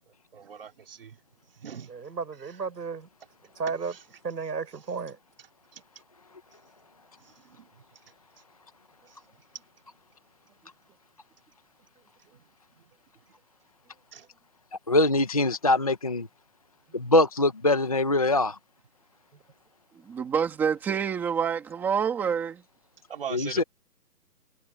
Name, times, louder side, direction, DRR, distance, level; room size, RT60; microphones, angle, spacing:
voice 1, 0.1-1.2 1.6-1.9 2.4-2.6 3.9-4.0 5.7-5.8 7.2-7.7 9.1-9.2 12.3-12.4 12.8-12.9 14.1-14.3 23.1-23.6, right 7 dB, 35° right, 3.2 m, -42 dB
voice 2, 1.9-3.1 3.6-3.9 4.2-5.2 16.9-17.0, right 5 dB, 80° right, 7.2 m, -33 dB
voice 3, 14.9-16.3 16.9-18.6 23.3-23.6, left 2 dB, 20° left, 0.9 m, -23 dB
voice 4, 20.0-22.6, right 7 dB, 5° right, 2.3 m, -27 dB
hypercardioid pair, 175°, 50 cm